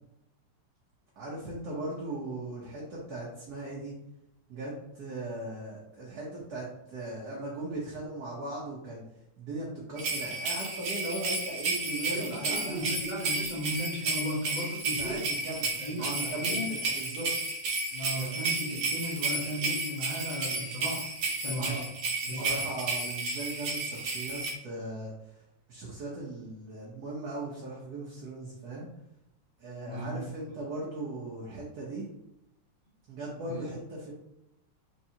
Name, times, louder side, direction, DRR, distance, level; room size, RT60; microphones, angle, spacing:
voice 1, 1.2-3.9 4.5-9.0 9.4-12.8 15.0-17.3 18.2-18.4 21.6-21.8 22.2-25.4 25.7-28.9 29.6-32.1 33.1-34.1, right 2 dB, 55° right, -5 dB, 1.3 m, -38 dB
sound 1, 10.0-24.5, right 3 dB, 80° right, 1.9 m, -32 dB
voice 2, 12.0-15.2 15.8-16.7 17.9-21.1 21.4-21.9 22.3-22.7 29.9-30.2 33.4-33.6, equal, 30° left, -6 dB, 1.0 m, -36 dB
4.6 x 3.6 x 2.8 m, 0.82 s
omnidirectional pair, 2.4 m